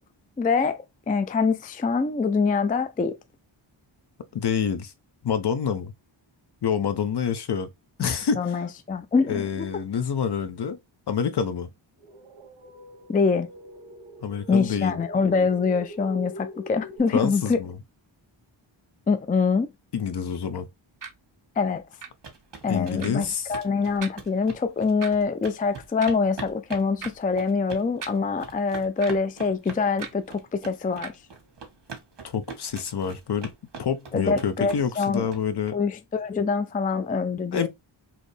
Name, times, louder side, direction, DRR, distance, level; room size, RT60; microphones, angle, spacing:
voice 1, 0.4-3.2 8.0-8.1 8.4-9.6 13.1-13.5 14.5-17.6 19.1-19.7 21.6-21.8 22.6-31.1 34.1-35.3 35.7-37.7, left 5 dB, 20° left, 0.3 m, -25 dB
voice 2, 4.3-4.9 5.2-5.9 6.6-7.7 8.0-8.6 9.3-10.8 11.1-11.7 14.2-15.0 17.1-17.8 19.9-20.7 22.7-23.5 32.2-33.5 33.8-35.8 37.5-37.7, left 7 dB, 55° left, 0.7 m, -27 dB
sound 1, 12.0-17.0, right 1 dB, 75° right, 0.9 m, -43 dB
sound 2, 21.0-21.1 22.0-22.1 23.0-23.1 24.0-24.2 25.0-25.1 26.0-26.2 27.0-27.1 28.0-28.1 29.0-29.1 30.0-30.1 31.0-31.1, right 5 dB, 40° right, 0.8 m, -37 dB
sound 3, 21.9-35.7, right 5 dB, 60° right, 1.5 m, -42 dB
4.2 x 2.9 x 3.2 m
wide cardioid pair, 130°, 48 cm